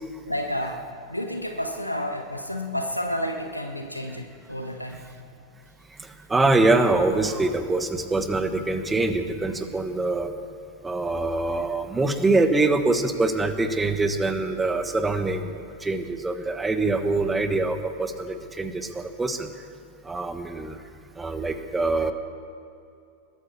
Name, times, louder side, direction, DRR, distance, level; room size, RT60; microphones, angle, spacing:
voice 1, 0.2-5.0, left 1 dB, 90° left, 4 dB, 1.2 m, -30 dB
voice 2, 6.3-10.3 10.8-15.5 15.8-19.5 20.0-20.8 21.2-22.1, right 2 dB, 10° right, 9 dB, 1.2 m, -24 dB
20.5 x 9.3 x 7.0 m, 2.5 s
figure-of-eight pair, 90°, 0 cm